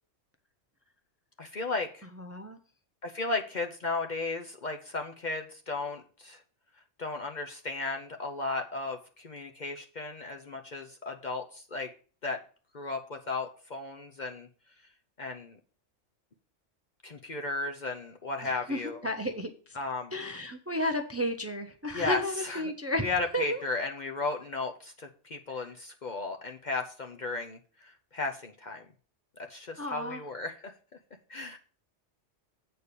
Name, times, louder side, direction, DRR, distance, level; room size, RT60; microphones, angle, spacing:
voice 1, 1.4-2.1 3.0-6.4 7.0-11.9 12.2-12.4 12.7-14.5 15.2-15.6 17.0-19.1 19.8-20.1 21.9-22.6 23.0-28.8 29.4-30.7 31.3-31.6, left 3 dB, 45° left, 4 dB, 0.8 m, -35 dB
voice 2, 2.2-2.6 18.4-19.8 20.1-23.1 23.3-23.9 29.8-30.2, left 1 dB, 15° right, 6 dB, 0.6 m, -33 dB
8.3 x 4.4 x 6.7 m, 0.41 s
omnidirectional pair, 1.2 m